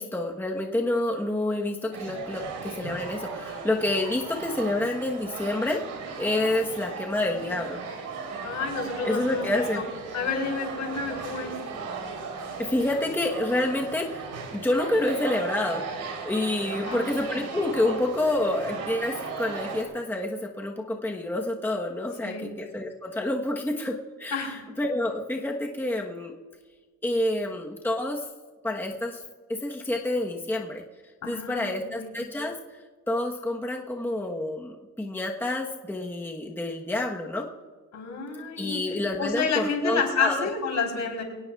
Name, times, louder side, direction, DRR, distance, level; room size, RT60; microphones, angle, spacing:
voice 1, 0.0-5.8 6.2-7.8 9.0-9.8 12.6-15.8 16.2-26.3 27.0-28.2 28.6-29.2 29.5-30.8 31.3-32.5 33.1-37.5 38.6-40.5, left 1 dB, 5° left, 0 dB, 1.1 m, -28 dB
sound 1, 1.9-19.8, right 4 dB, 80° right, 3.7 m, -37 dB
voice 2, 8.4-9.8 10.1-11.5 16.7-17.0 22.2-22.4 24.3-24.6 31.2-32.1 37.9-38.8 39.2-41.2, left 5 dB, 65° left, 2 dB, 3.9 m, -29 dB
23.0 x 18.0 x 2.4 m, 1.4 s
cardioid pair, 135°, 31 cm